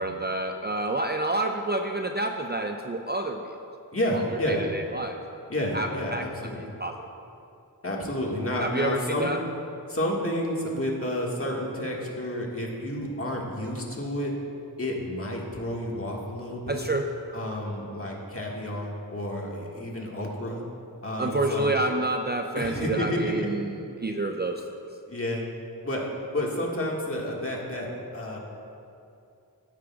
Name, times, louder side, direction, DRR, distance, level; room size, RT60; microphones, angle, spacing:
voice 1, 0.0-3.6 4.5-5.4 5.7-6.2 6.6-7.0 8.6-9.4 16.7-17.1 21.2-24.6, right 2 dB, 25° right, 4 dB, 0.5 m, -28 dB
voice 2, 3.9-4.6 5.5-6.6 7.8-9.3 9.9-14.3 14.8-16.9 17.3-20.6 21.0-21.8 22.6-23.5 25.1-25.5 25.8-28.4, left 1 dB, 35° left, -2 dB, 1.8 m, -30 dB
13.0 x 9.9 x 2.4 m, 2.6 s
cardioid pair, 45°, 40 cm